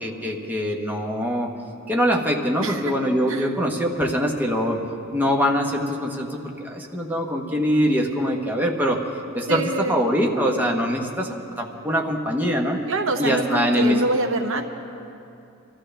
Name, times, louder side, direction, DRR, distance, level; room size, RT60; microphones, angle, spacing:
voice 1, 0.0-1.5 1.9-4.8 5.1-9.0 9.3-9.6 9.9-12.8 13.2-14.0, equal, 10° right, 0 dB, 1.1 m, -23 dB
voice 2, 2.6-2.9 3.3-3.5 9.5-10.0 12.9-14.6, right 2 dB, 60° right, 5 dB, 0.9 m, -25 dB
25.5 x 14.0 x 3.4 m, 2.7 s
head